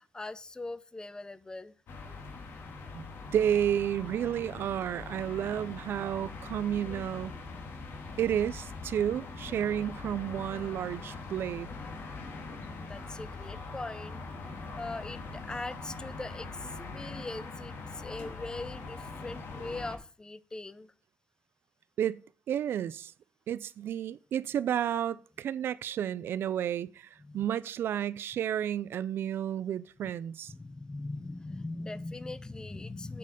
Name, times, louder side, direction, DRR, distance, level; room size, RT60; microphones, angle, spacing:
voice 1, 0.0-1.7 12.8-14.2 14.8-20.9 24.9-25.0 27.2-27.4 30.5-33.2, left 2 dB, 20° left, 0.6 m, -41 dB
sound 1, 1.9-20.0, left 3 dB, 85° left, 2.0 m, -42 dB
voice 2, 2.9-7.4 8.2-11.7 22.0-22.2 22.5-23.1 23.5-25.2 25.4-30.5, right 10 dB, 80° right, 0.4 m, -31 dB
8.4 x 6.8 x 5.0 m
cardioid pair, 100°, 4 cm